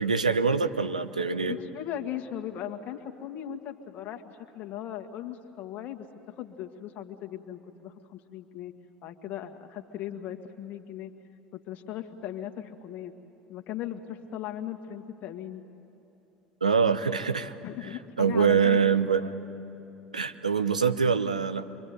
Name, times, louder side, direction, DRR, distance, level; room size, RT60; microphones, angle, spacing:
voice 1, 0.0-1.6 16.6-17.5 18.2-19.3 20.1-21.6, right 6 dB, 85° right, 10 dB, 0.9 m, -24 dB
voice 2, 1.4-6.1 6.4-8.7 9.0-11.1 11.5-13.1 13.5-15.6 17.6-18.8, left 11 dB, 50° left, 5 dB, 1.9 m, -38 dB
25.0 x 24.0 x 9.3 m, 2.9 s
figure-of-eight pair, 65°, 4 cm